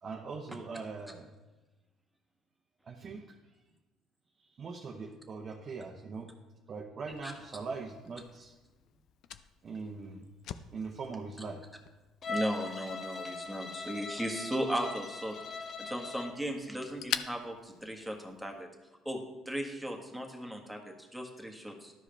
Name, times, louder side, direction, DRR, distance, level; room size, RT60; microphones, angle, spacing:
voice 1, 0.0-1.3 2.8-3.4 4.6-6.3 6.7-8.5 9.6-10.3 10.7-11.6, right 4 dB, 45° right, -1 dB, 0.9 m, -41 dB
Fire, 7.1-18.6, left 10 dB, 65° left, 0.4 m, -46 dB
Bowed string instrument, 12.2-16.4, left 4 dB, 40° left, 0.7 m, -40 dB
voice 2, 12.3-18.7 19.0-19.2 19.4-21.9, equal, ahead, 1 dB, 1.5 m, -37 dB
13.0 x 4.9 x 3.4 m, 1.1 s
supercardioid pair, 80°, 0 cm